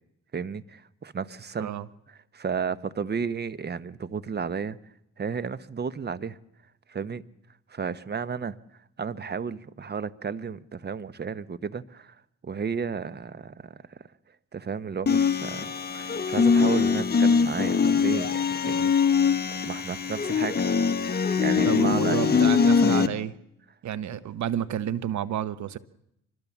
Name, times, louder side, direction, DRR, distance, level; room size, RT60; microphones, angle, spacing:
voice 1, 0.3-1.7 2.1-4.8 5.2-6.4 6.9-7.2 7.7-12.2 12.4-14.0 14.5-19.3 19.6-20.6 21.4-22.4, right 6 dB, 35° right, 1.0 m, -33 dB
sound 1, 15.1-23.1, left 6 dB, 30° left, 1.5 m, -22 dB
voice 2, 21.7-23.3 23.8-25.8, right 10 dB, 70° right, 1.1 m, -30 dB
25.0 x 20.5 x 7.3 m
cardioid pair, 90°, 30 cm